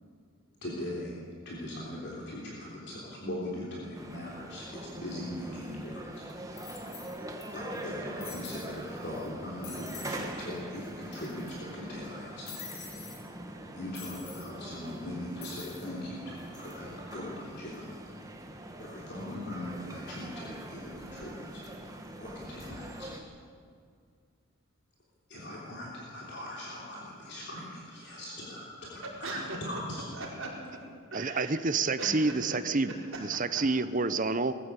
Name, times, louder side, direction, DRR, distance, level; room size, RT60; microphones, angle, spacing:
voice 1, 0.6-1.1 1.5-6.3 7.5-12.5 13.7-18.0 18.8-21.6 22.2-23.1 25.3-29.4 29.6-30.0, left 1 dB, 50° left, -5 dB, 3.4 m, -40 dB
sound 1, 3.9-23.2, right 1 dB, 15° right, 1.4 m, -43 dB
sound 2, 5.7-5.8 6.6-7.4 7.7-7.8 8.2-8.7 9.1-9.3 9.6-10.2 10.5-10.6 10.8-11.6 12.5-13.2 13.9-14.5 15.4-15.9 16.4-16.7, left 7 dB, 70° left, 4.2 m, -46 dB
voice 2, 29.0-29.8 30.1-31.5 32.0-32.6 32.9-33.6, right 1 dB, 60° right, -3 dB, 5.2 m, -40 dB
voice 3, 31.1-32.9 33.2-34.5, right 3 dB, 35° right, 12 dB, 0.7 m, -28 dB
21.0 x 15.0 x 8.3 m, 2.1 s
head